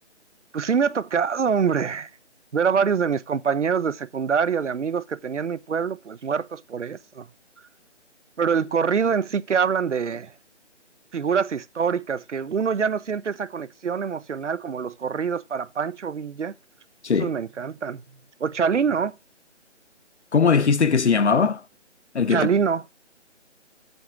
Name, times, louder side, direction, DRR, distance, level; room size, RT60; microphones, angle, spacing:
voice 1, 0.5-2.1 2.5-7.3 8.4-10.3 11.1-16.5 17.2-18.0 18.4-19.1 22.3-22.8, right 6 dB, 75° right, 0.8 m, -25 dB
voice 2, 20.3-21.6 22.1-22.5, left 5 dB, 65° left, 0.9 m, -20 dB
8.0 x 7.2 x 6.1 m
figure-of-eight pair, 175°, 36 cm